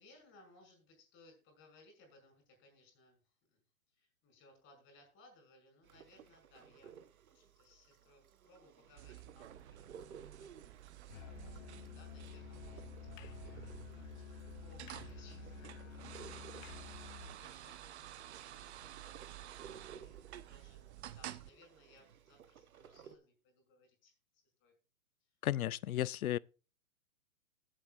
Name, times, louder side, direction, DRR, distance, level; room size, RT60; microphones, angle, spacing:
voice 1, 0.0-6.9 7.3-16.9 17.2-24.7 25.2-25.4, left 2 dB, 30° left, 5.8 m, -65 dB
sound 1, 5.8-23.2, right 7 dB, 80° right, 1.2 m, -58 dB
sound 2, 9.0-21.5, right 12 dB, 50° right, 0.9 m, -51 dB
Musical instrument, 11.1-17.4, left 9 dB, 60° left, 0.8 m, -51 dB
voice 2, 25.4-26.4, left 12 dB, 90° left, 0.5 m, -34 dB
20.0 x 7.7 x 2.5 m
hypercardioid pair, 140°, 42 cm